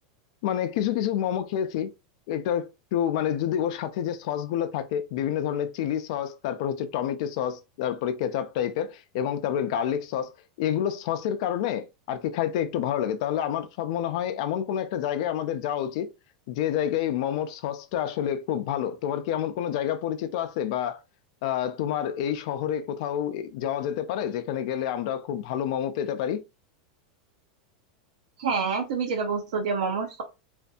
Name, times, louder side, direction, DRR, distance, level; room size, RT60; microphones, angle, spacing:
voice 1, 0.4-1.9 2.3-10.3 10.6-16.1 16.5-21.0 21.4-26.4, left 10 dB, 60° left, 0.4 m, -28 dB
voice 2, 28.4-30.2, right 5 dB, 80° right, 0.6 m, -27 dB
2.5 x 2.5 x 2.3 m
supercardioid pair, 150°, 4 cm